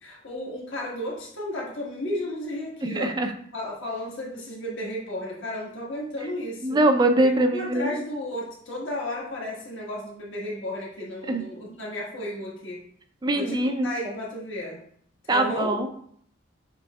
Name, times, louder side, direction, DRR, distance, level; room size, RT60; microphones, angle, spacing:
voice 1, 0.0-3.1 3.5-6.8 7.2-12.8 13.3-14.8 15.2-15.8, left 1 dB, 90° left, -3 dB, 1.5 m, -33 dB
voice 2, 2.8-3.3 6.6-7.9 11.3-11.4 13.2-14.1 15.3-15.9, right 1 dB, 20° right, 6 dB, 0.3 m, -23 dB
6.8 x 3.3 x 2.3 m, 0.64 s
head